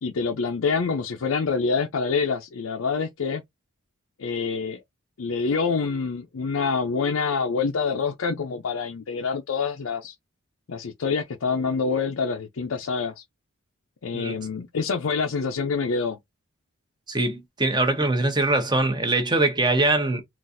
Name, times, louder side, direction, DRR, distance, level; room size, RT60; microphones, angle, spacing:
voice 1, 0.0-3.4 4.2-4.8 5.2-10.1 10.7-13.2 14.0-16.2, left 5 dB, 70° left, 0.5 m, -26 dB
voice 2, 17.1-20.2, right 2 dB, 20° right, 0.8 m, -22 dB
3.9 x 2.5 x 2.5 m
head